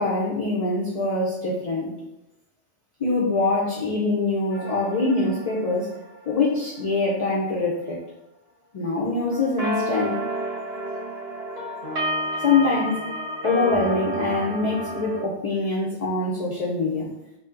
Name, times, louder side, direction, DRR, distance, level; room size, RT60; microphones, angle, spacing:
voice 1, 0.0-1.9 3.0-5.9 6.3-8.0 8.7-10.3 12.4-13.0 13.4-17.1, left 3 dB, 55° left, -4 dB, 0.4 m, -24 dB
sound 1, 4.5-6.6 9.3-15.2, right 1 dB, 40° right, 0.7 m, -30 dB
2.7 x 2.1 x 3.6 m, 0.91 s
omnidirectional pair, 1.1 m